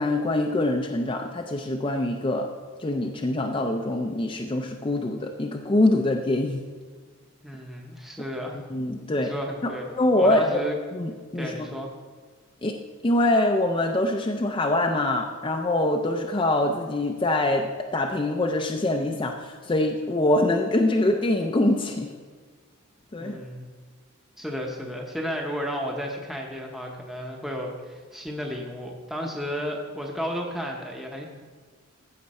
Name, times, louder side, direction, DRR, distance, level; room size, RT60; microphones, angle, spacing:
voice 1, 0.0-2.5 2.8-6.6 8.7-9.3 9.6-10.6 10.9-11.7 12.6-12.8 13.0-22.1 23.1-23.4, left 1 dB, 25° left, 2 dB, 0.5 m, -24 dB
voice 2, 7.4-8.6 9.2-9.9 10.2-10.7 11.3-11.9 23.2-23.7 24.4-31.3, equal, ahead, 0 dB, 0.8 m, -33 dB
15.0 x 5.8 x 4.2 m, 1.5 s
head